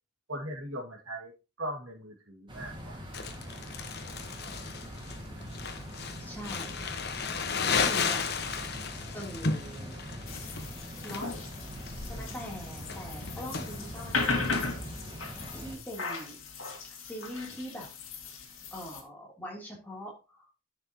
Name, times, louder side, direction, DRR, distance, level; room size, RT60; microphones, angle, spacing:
voice 1, 0.3-1.3 1.6-3.0 12.1-12.4, right 1 dB, 85° right, 1 dB, 2.1 m, -40 dB
sound 1, 2.5-15.8, equal, 20° right, 1.8 m, -43 dB
Crumpling crinkling, 3.1-14.7, left 5 dB, 50° left, 1.0 m, -34 dB
voice 2, 6.2-6.8 7.5-8.2 9.1-10.0 11.0-11.3 12.0-14.6 15.5-16.4 16.9-17.9 18.7-20.1, equal, 10° left, -2 dB, 3.0 m, -42 dB
sound 2, 10.3-19.0, left 3 dB, 65° left, 2.1 m, -37 dB
11.0 x 7.5 x 2.9 m, 0.30 s
head